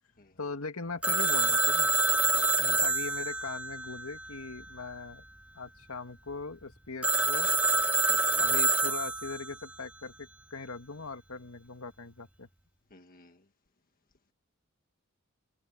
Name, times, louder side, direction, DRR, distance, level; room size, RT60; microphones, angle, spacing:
voice 1, 0.4-1.9 2.6-5.2 5.5-7.5 8.4-12.5, left 4 dB, 80° left, 2.1 m, -40 dB
Telephone, 1.0-4.7 7.0-9.6, right 3 dB, 5° right, 0.5 m, -27 dB
voice 2, 8.1-8.4 12.9-13.4, left 1 dB, 45° left, 1.4 m, -56 dB
head